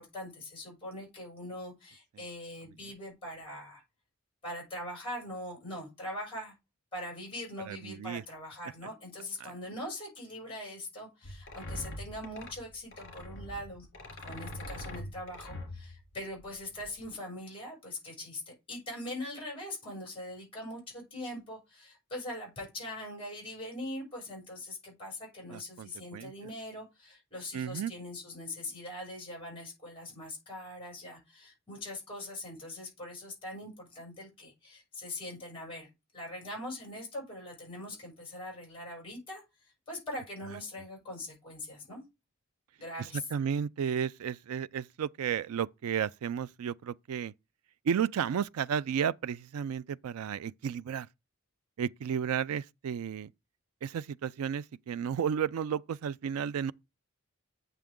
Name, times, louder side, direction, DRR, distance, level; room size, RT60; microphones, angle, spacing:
voice 1, 0.0-3.8 4.4-6.5 6.9-13.9 14.2-35.9 36.1-39.4 39.9-42.0 42.8-43.2, left 1 dB, 25° left, 6.7 m, -42 dB
voice 2, 7.7-8.2 9.4-9.5 25.5-26.3 27.5-27.9 43.0-47.3 47.8-51.1 51.8-53.3 53.8-56.7, right 8 dB, 90° right, 0.4 m, -33 dB
sound 1, 11.2-17.1, left 1 dB, 55° left, 3.6 m, -43 dB
9.0 x 6.8 x 3.6 m
head